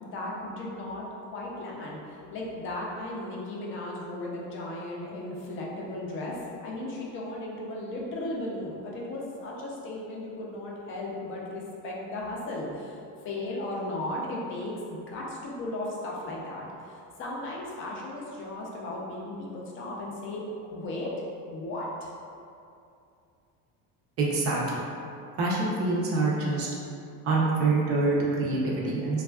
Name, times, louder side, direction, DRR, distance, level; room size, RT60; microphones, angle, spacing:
voice 1, 0.0-13.0 13.2-21.1 21.5-22.1, left 1 dB, 35° left, -3 dB, 0.4 m, -36 dB
voice 2, 24.2-24.8 25.4-26.7 27.2-29.2, right 3 dB, 40° right, -4 dB, 0.5 m, -25 dB
3.3 x 2.3 x 2.2 m, 2.6 s
cardioid pair, 155°, 36 cm